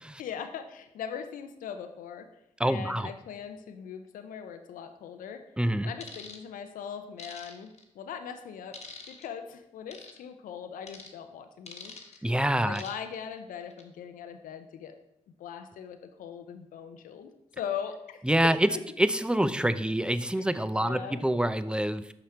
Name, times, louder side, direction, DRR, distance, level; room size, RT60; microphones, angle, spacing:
voice 1, 0.2-2.3 2.7-5.4 5.8-8.8 9.1-12.3 12.6-15.0 15.4-17.3 17.6-18.8 20.4-21.2, left 8 dB, 80° left, 8 dB, 0.5 m, -40 dB
voice 2, 2.6-3.1 5.6-5.9 12.2-12.8 18.3-18.7 19.0-22.1, right 1 dB, 5° right, 13 dB, 0.5 m, -26 dB
sound 1, 6.0-6.4 7.2-7.8 8.7-9.3 9.9-10.2 10.9-11.1 11.7-12.2 12.7-13.1 13.6-13.8, left 4 dB, 55° left, 1.1 m, -45 dB
5.7 x 5.0 x 4.3 m, 0.80 s
supercardioid pair, 45°, 14 cm